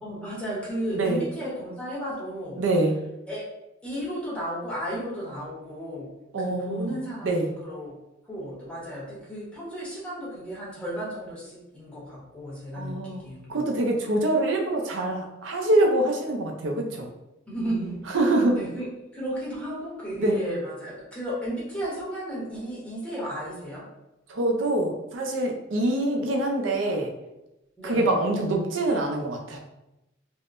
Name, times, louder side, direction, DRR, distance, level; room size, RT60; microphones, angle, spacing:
voice 1, 0.0-2.6 3.3-3.4 3.8-6.1 6.4-7.9 8.3-13.6 17.5-18.0 18.5-18.9 19.1-23.8 27.8-28.1, right 1 dB, 5° left, -7 dB, 0.9 m, -34 dB
voice 2, 2.6-2.9 6.3-7.0 7.2-7.5 12.7-13.2 13.5-17.1 18.1-18.6 20.2-20.4 24.3-27.1 27.8-29.6, right 1 dB, 70° right, 1 dB, 0.5 m, -25 dB
3.4 x 2.0 x 2.4 m, 0.93 s
head